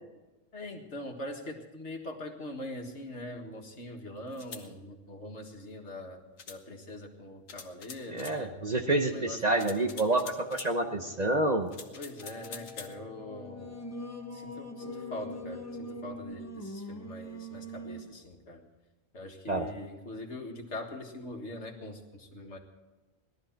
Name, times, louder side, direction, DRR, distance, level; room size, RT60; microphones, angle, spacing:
voice 1, 0.5-8.5 9.0-10.0 12.0-13.8 14.3-18.6 19.1-22.6, left 1 dB, 60° left, 3 dB, 2.0 m, -42 dB
sound 1, 4.3-4.7 6.4-6.6 7.5-8.4 9.6-10.7 11.7-12.9, left 5 dB, 80° left, 1.6 m, -45 dB
voice 2, 8.1-11.7 19.5-19.7, right 2 dB, 35° right, 4 dB, 0.9 m, -28 dB
sound 2, 10.0-16.2, left 5 dB, 70° right, 2.0 m, -50 dB
Singing, 13.3-18.2, equal, 15° left, 0.8 m, -42 dB
18.5 x 12.5 x 4.5 m, 1.2 s
omnidirectional pair, 1.3 m